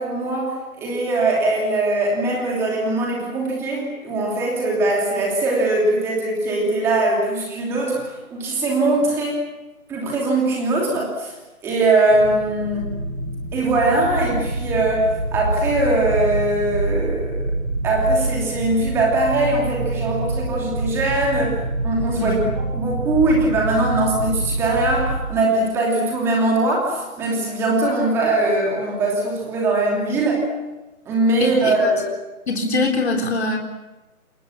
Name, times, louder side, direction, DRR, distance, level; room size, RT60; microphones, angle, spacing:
voice 1, 0.0-9.4 9.9-11.3 11.6-12.9 13.5-17.4 17.8-30.4 31.1-32.1, right 2 dB, 5° right, -2 dB, 2.8 m, -21 dB
sound 1, 12.1-25.2, right 2 dB, 85° right, 6.4 m, -26 dB
voice 2, 22.2-22.5 31.4-31.9 32.5-33.6, left 2 dB, 45° left, 2 dB, 3.9 m, -23 dB
28.0 x 22.0 x 7.4 m, 1.1 s
figure-of-eight pair, 165°, 44 cm